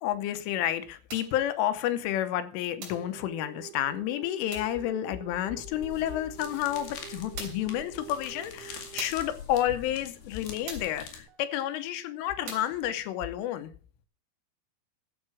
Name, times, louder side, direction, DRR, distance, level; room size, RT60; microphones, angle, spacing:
voice 1, 0.0-13.7, left 12 dB, 85° left, 3.3 m, -30 dB
sound 1, 1.1-1.4 2.8-3.1 4.5-4.8 6.6-6.7 7.4-7.7 9.0-9.3 10.7-11.0 12.5-12.8, right 4 dB, 40° right, 4.2 m, -42 dB
sound 2, 2.9-9.5 11.3-11.4, right 13 dB, 75° right, 3.3 m, -48 dB
sound 3, 5.7-11.3, left 7 dB, 55° left, 3.6 m, -44 dB
12.5 x 7.4 x 6.1 m
omnidirectional pair, 5.9 m